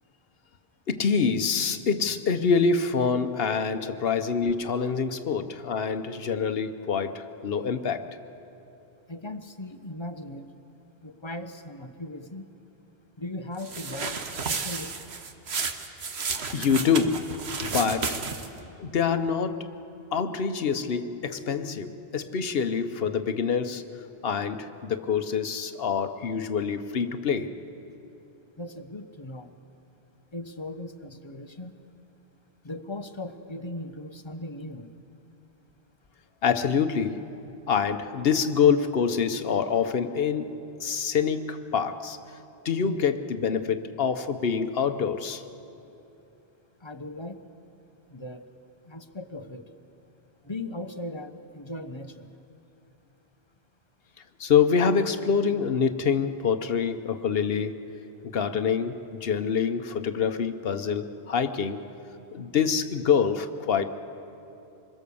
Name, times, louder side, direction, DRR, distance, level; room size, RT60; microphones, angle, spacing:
voice 1, 0.9-8.1 16.5-17.3 17.6-18.2 18.8-19.7 20.1-23.8 24.2-27.5 36.4-37.3 37.7-42.2 42.6-45.4 54.4-57.8 58.2-61.9 62.3-63.9, left 6 dB, 70° left, 9 dB, 1.0 m, -26 dB
voice 2, 9.1-10.5 11.0-12.5 13.2-15.2 28.6-29.6 30.3-31.7 32.6-34.9 46.8-47.4 48.1-48.5 48.8-49.7 50.4-52.3, left 1 dB, 30° left, 8 dB, 0.9 m, -38 dB
sound 1, 13.6-18.6, right 5 dB, 85° right, 1.4 m, -32 dB
25.5 x 22.0 x 7.0 m, 2.9 s
omnidirectional pair, 1.0 m